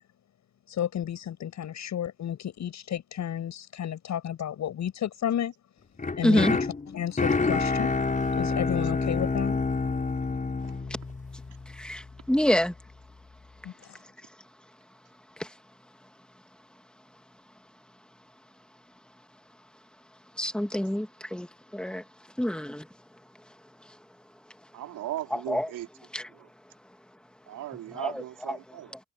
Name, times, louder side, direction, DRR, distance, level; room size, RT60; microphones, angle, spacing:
voice 1, 0.7-5.5 6.2-6.6 6.9-7.9 8.4-9.6 13.6-14.0, left 10 dB, 65° left, 7.8 m, -32 dB
sound 1, 6.0-12.1, left 4 dB, 25° left, 5.6 m, -28 dB
voice 2, 6.2-6.5 11.7-12.7 15.4-15.5 20.4-21.5 21.7-22.0 22.4-22.9 25.3-25.7 26.1-26.3 27.9-28.6 28.9-29.0, left 1 dB, 5° left, 2.3 m, -27 dB
voice 3, 24.7-25.9 27.5-28.9, right 14 dB, 90° right, 4.7 m, -37 dB
cardioid pair, 90°, 30 cm